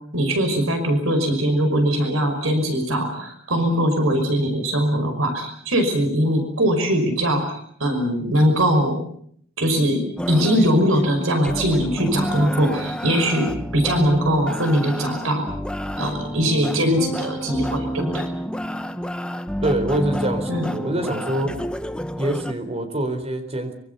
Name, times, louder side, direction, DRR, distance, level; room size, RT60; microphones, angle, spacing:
voice 1, 0.1-9.0 9.6-15.5 16.0-18.3 20.5-20.7 21.4-21.6, equal, 75° right, 6 dB, 5.7 m, -21 dB
sound 1, 10.2-22.5, equal, 5° left, 1.0 m, -29 dB
voice 2, 19.6-21.6 22.2-23.7, right 1 dB, 30° right, 8 dB, 4.3 m, -25 dB
25.5 x 25.0 x 7.0 m, 0.66 s
head